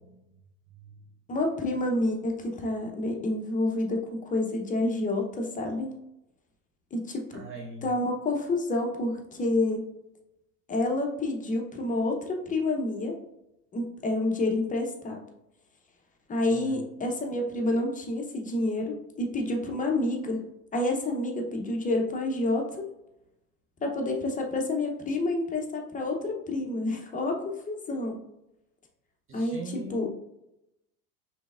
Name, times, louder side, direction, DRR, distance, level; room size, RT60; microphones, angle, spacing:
voice 1, 1.3-5.9 6.9-7.2 7.8-9.8 10.7-13.1 13.7-15.2 16.3-20.4 20.7-22.7 23.8-27.4 27.7-28.2 29.3-30.1, left 2 dB, 15° left, 1 dB, 0.7 m, -28 dB
voice 2, 7.3-7.9 16.5-16.8 29.3-30.1, right 2 dB, 30° right, 0 dB, 0.6 m, -41 dB
4.8 x 3.4 x 2.4 m, 0.87 s
hypercardioid pair, 85°, 46 cm